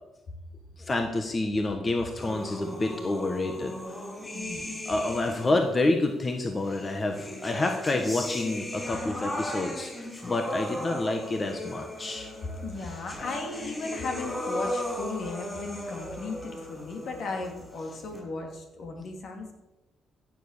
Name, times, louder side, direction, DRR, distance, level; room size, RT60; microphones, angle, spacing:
voice 1, 0.8-3.7 4.9-12.3, left 2 dB, 30° left, 4 dB, 1.5 m, -28 dB
sound 1, 2.2-5.6 6.6-18.2, left 1 dB, 10° left, 6.3 m, -37 dB
voice 2, 4.3-4.8 12.4-19.5, left 3 dB, 65° left, 2 dB, 3.1 m, -36 dB
15.5 x 7.4 x 6.8 m, 1.0 s
cardioid pair, 90°, 0 cm